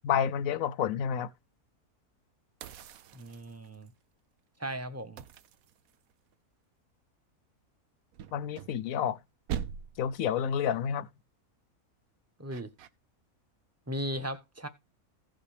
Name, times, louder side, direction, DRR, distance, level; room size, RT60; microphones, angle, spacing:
voice 1, 0.0-1.3 8.3-9.2 10.0-11.1, left 8 dB, 65° left, 1.1 m, -29 dB
sound 1, 2.6-3.9 5.2-6.3 8.1-9.2 9.5-10.2 12.5-12.9, right 9 dB, 70° right, 1.2 m, -41 dB
voice 2, 3.1-3.9 4.6-5.2 12.4-12.7 13.9-14.7, equal, 10° right, 1.0 m, -37 dB
16.5 x 5.6 x 3.4 m
omnidirectional pair, 1.6 m